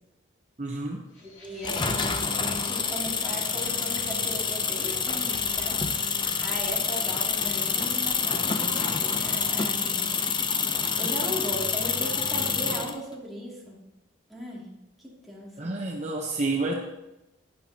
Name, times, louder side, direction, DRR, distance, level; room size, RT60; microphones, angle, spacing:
voice 1, 0.6-1.0 11.0-11.1 15.6-16.7, right 2 dB, 40° right, 0 dB, 0.9 m, -29 dB
sound 1, 1.1-9.9, left 2 dB, 70° left, 2.4 m, -47 dB
voice 2, 1.2-5.9 6.4-10.1 10.9-13.9 14.3-15.8, equal, ahead, -5 dB, 2.5 m, -38 dB
sound 2, 1.6-12.9, left 5 dB, 25° left, 0.6 m, -27 dB
11.0 x 10.5 x 2.9 m, 0.95 s
head